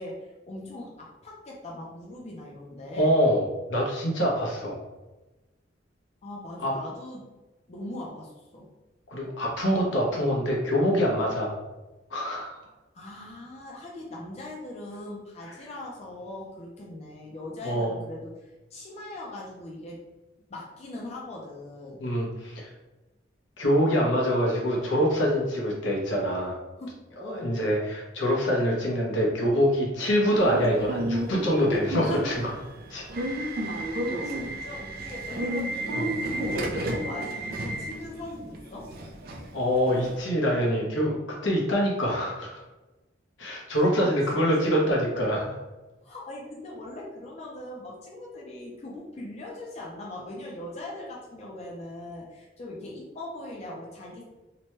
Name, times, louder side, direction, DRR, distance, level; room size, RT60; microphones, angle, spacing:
voice 1, 0.0-3.1 6.2-7.2 7.7-8.7 12.9-20.1 20.5-22.0 26.8-27.6 32.0-32.2 33.3-38.9 43.7-45.0 46.0-54.2, left 1 dB, 35° left, -3 dB, 0.5 m, -40 dB
voice 2, 2.9-4.8 6.6-6.7 9.1-11.5 12.1-12.6 15.4-15.5 17.6-18.0 22.0-22.7 23.6-26.6 27.2-32.5 32.9-33.1 35.9-36.0 39.5-42.6 43.4-45.6, equal, 80° left, -2 dB, 0.8 m, -25 dB
Subway metro underground / Alarm, 30.4-40.2, right 1 dB, 55° right, 0.4 m, -32 dB
2.9 x 2.2 x 2.9 m, 1.1 s
head